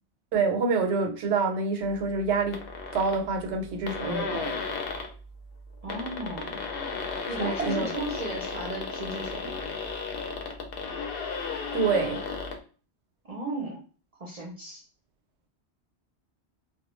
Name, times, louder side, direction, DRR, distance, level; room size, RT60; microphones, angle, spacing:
voice 1, 0.3-2.7 2.9-4.6 7.4-7.9 11.7-12.2, right 4 dB, 85° right, 0.9 m, -27 dB
sound 1, 2.5-3.2 3.6-3.7 3.9-5.1 5.7-12.6, left 4 dB, 65° left, 0.7 m, -34 dB
voice 2, 5.8-6.6 7.3-9.6 13.2-13.8 14.2-14.8, right 2 dB, 45° right, 0.5 m, -35 dB
2.2 x 2.1 x 3.0 m
omnidirectional pair, 1.1 m